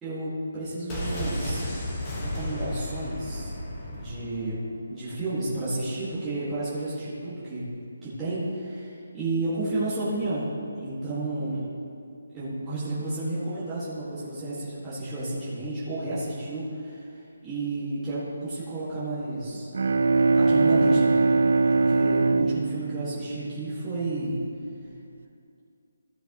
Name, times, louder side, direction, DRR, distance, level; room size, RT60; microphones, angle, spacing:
voice 1, 0.0-1.6 2.2-3.5 3.9-7.6 8.0-10.5 10.8-11.7 12.3-19.7 20.3-21.1 21.7-24.4, right 2 dB, 10° right, -13 dB, 2.0 m, -31 dB
sound 1, 0.9-4.7 4.9-5.0, equal, 15° left, 1.5 m, -33 dB
Bowed string instrument, 19.5-24.3, right 3 dB, 60° right, 0.5 m, -22 dB
15.5 x 6.7 x 3.1 m, 2.4 s
hypercardioid pair, 170°, 0 cm